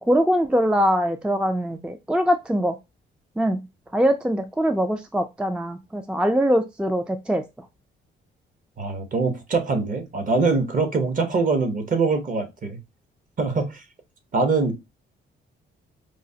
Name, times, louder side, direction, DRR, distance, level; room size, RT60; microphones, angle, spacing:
voice 1, 0.0-2.8 3.4-3.6 3.9-7.4, equal, 5° right, 0.3 m, -22 dB
voice 2, 8.8-12.8 13.4-13.8 14.3-14.8, right 4 dB, 40° right, 0.9 m, -23 dB
4.8 x 2.0 x 2.6 m
cardioid pair, 90°, 20 cm